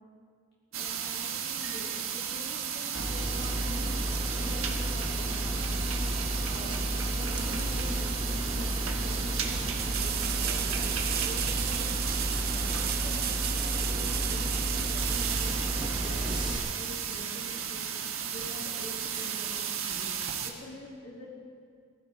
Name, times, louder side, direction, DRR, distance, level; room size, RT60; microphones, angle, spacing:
voice 1, 0.7-15.6 16.0-17.9 18.3-20.2 20.4-21.3, equal, 50° left, -8 dB, 3.3 m, -46 dB
sound 1, 0.7-20.5, right 8 dB, 75° right, 1.4 m, -35 dB
sound 2, 2.9-16.6, right 1 dB, 20° right, 1.7 m, -32 dB
sound 3, 9.7-16.3 19.2-19.3, right 10 dB, 45° right, 0.8 m, -34 dB
21.5 x 14.5 x 3.8 m, 2.1 s
head